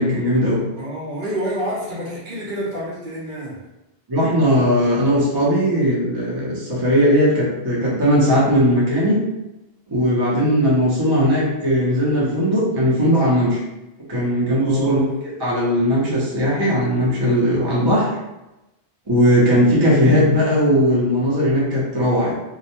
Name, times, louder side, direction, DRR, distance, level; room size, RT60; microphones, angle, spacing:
voice 1, 0.0-0.6 4.1-9.2 9.9-13.6 14.1-15.0 15.4-18.1 19.1-22.3, equal, 30° right, -5 dB, 0.5 m, -18 dB
voice 2, 0.8-3.6 14.6-15.0, equal, 55° right, -6 dB, 0.8 m, -28 dB
2.3 x 2.1 x 2.9 m, 0.96 s
omnidirectional pair, 1.1 m